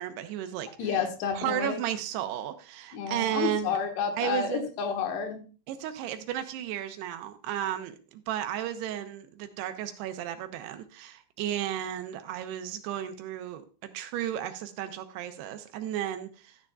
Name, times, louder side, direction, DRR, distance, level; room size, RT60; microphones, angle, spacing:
voice 1, 0.0-1.1 1.3-3.8 4.2-4.7 5.7-16.6, right 11 dB, 80° right, 8 dB, 2.7 m, -34 dB
voice 2, 0.8-1.8 2.9-5.4, left 6 dB, 80° left, 5 dB, 3.4 m, -30 dB
13.5 x 9.4 x 2.3 m, 0.35 s
omnidirectional pair, 4.8 m